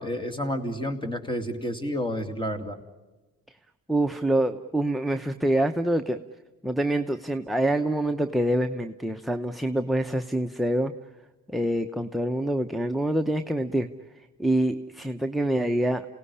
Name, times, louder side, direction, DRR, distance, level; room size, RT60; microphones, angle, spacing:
voice 1, 0.0-2.8, equal, 15° left, 7 dB, 2.7 m, -30 dB
voice 2, 3.9-6.2 6.6-10.9 11.5-13.9 14.4-16.1, right 1 dB, ahead, 5 dB, 0.8 m, -26 dB
28.0 x 18.0 x 9.9 m, 1.2 s
cardioid pair, 90°, 30 cm